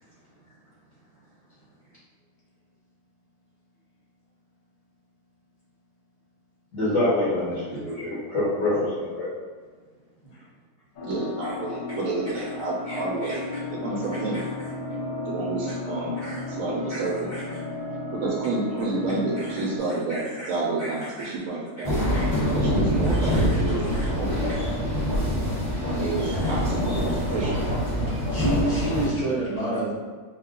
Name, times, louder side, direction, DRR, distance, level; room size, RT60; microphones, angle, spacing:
voice 1, 6.7-9.3 11.4-11.5 12.9-13.3 16.2-16.4 16.9-17.0 17.3-17.4 20.1-20.5 20.8-21.3 22.1-22.3 23.0-23.4 23.9-24.0 26.4-26.5, left 1 dB, 55° left, -9 dB, 1.1 m, -28 dB
sound 1, 11.0-19.8, left 2 dB, 75° left, 0.4 m, -34 dB
voice 2, 11.0-14.4 15.3-16.3 16.6-17.3 18.1-22.0 22.5-24.5 25.9-27.7, right 3 dB, 70° right, -4 dB, 0.8 m, -30 dB
sound 2, 21.8-29.1, equal, 25° right, 0.4 m, -25 dB
voice 3, 28.3-29.9, right 1 dB, 35° left, -8 dB, 0.7 m, -27 dB
2.9 x 2.3 x 3.6 m, 1.5 s
omnidirectional pair, 1.6 m